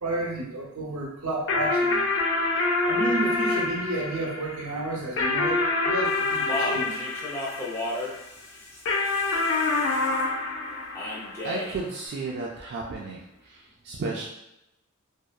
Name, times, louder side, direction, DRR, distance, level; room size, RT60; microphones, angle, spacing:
voice 1, 0.0-2.0 2.8-7.1, right 2 dB, 85° right, -2 dB, 0.6 m, -31 dB
sound 1, 1.5-8.2 8.9-11.7, left 3 dB, 60° left, 0.5 m, -26 dB
Speech, 6.0-10.2 10.9-11.8, left 1 dB, 10° left, 0.5 m, -35 dB
voice 2, 11.4-14.3, right 3 dB, 50° right, -2 dB, 0.3 m, -33 dB
2.6 x 2.2 x 2.2 m, 0.89 s
head